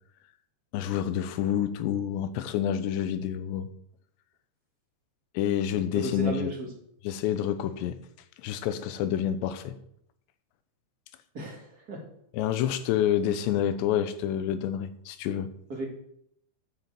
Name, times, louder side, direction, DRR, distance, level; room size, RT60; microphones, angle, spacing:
voice 1, 0.7-3.7 5.3-6.5 7.0-8.0 8.4-9.8 12.3-15.5, left 10 dB, 90° left, 12 dB, 3.1 m, -28 dB
voice 2, 5.9-6.7 11.3-12.0 15.7-15.8, right 1 dB, 30° right, 0 dB, 1.9 m, -34 dB
9.7 x 7.0 x 7.5 m, 0.72 s
omnidirectional pair, 4.9 m